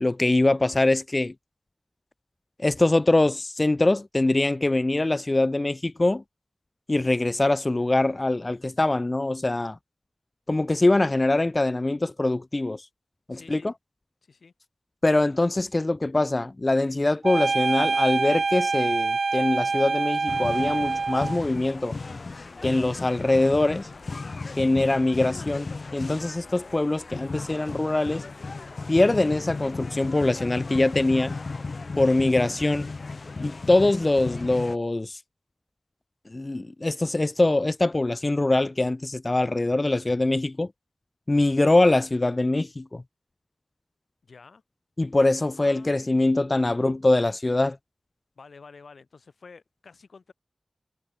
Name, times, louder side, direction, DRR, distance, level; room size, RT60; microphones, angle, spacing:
voice 1, 0.0-1.3 2.6-6.2 6.9-9.8 10.5-12.8 13.3-13.6 15.0-22.0 22.6-23.9 24.6-25.7 25.9-28.2 28.9-31.3 32.0-32.9 33.4-35.2 36.3-40.7 41.3-43.0 45.0-47.8, left 2 dB, 35° left, 0.4 m, -23 dB
voice 2, 13.3-13.7 14.2-14.5 31.9-32.2 44.2-44.6 45.6-47.2 48.4-50.3, left 4 dB, 90° left, 3.1 m, -50 dB
sound 1, 17.2-21.4, right 4 dB, 75° right, 0.4 m, -25 dB
sound 2, 20.3-34.8, left 3 dB, 65° left, 1.8 m, -35 dB
wide cardioid pair, 65°, 0 cm